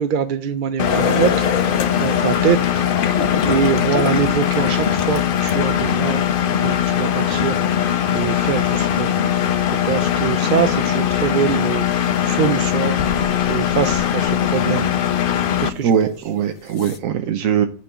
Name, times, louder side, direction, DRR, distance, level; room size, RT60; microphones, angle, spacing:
voice 1, 0.0-2.6 3.4-9.1 9.8-13.0 13.5-14.9 15.6-15.9, right 8 dB, 60° right, 0.5 m, -23 dB
Engine, 0.8-15.7, left 9 dB, 50° left, 0.7 m, -20 dB
sound 1, 0.9-6.1 8.2-8.3 11.1-11.2 12.0-12.2 12.9-14.6 15.1-15.2 16.0-16.1 16.7-17.0, left 7 dB, 85° left, 1.3 m, -28 dB
voice 2, 15.8-17.7, right 8 dB, 90° right, 1.1 m, -20 dB
8.5 x 4.5 x 7.3 m
omnidirectional pair, 1.4 m